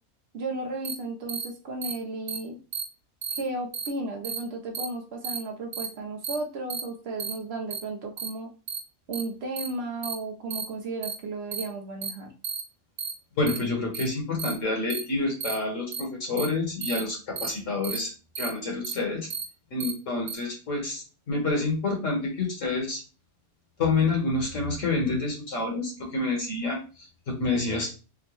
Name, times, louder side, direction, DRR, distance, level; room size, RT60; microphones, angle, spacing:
voice 1, 0.3-2.6 3.4-8.5 9.1-12.3, right 2 dB, 55° right, 2 dB, 0.8 m, -34 dB
sound 1, 0.8-0.9 1.3-1.4 1.8-1.9 2.3-2.4 2.7-2.8 3.2-3.4 3.7-3.9 4.2-4.4 4.7-4.8 5.2-5.4 5.7-5.9 6.2-6.3 6.7-6.8 7.2-7.3 7.7-7.8 8.2-8.3 8.7-8.8 9.1-9.2 9.6-9.7 10.0-10.1 10.5-10.6 11.0-11.1 11.5-11.6 12.0-12.1 12.4-12.6 13.0-13.1 13.5-13.6 13.9-14.0 14.4-14.5 14.9-15.0 15.4-15.5 15.9-16.0 16.4-16.5 16.8-17.0 17.4-17.5 17.8-18.0 18.3-18.5 18.8-18.9 19.3-19.4 19.8-19.9 20.3-20.4, right 6 dB, 85° right, 0.5 m, -32 dB
voice 2, 13.4-18.1 18.4-19.3 19.7-23.0 23.8-27.9, left 3 dB, 60° left, 0 dB, 1.3 m, -28 dB
3.7 x 2.1 x 3.0 m, 0.34 s
omnidirectional pair, 1.6 m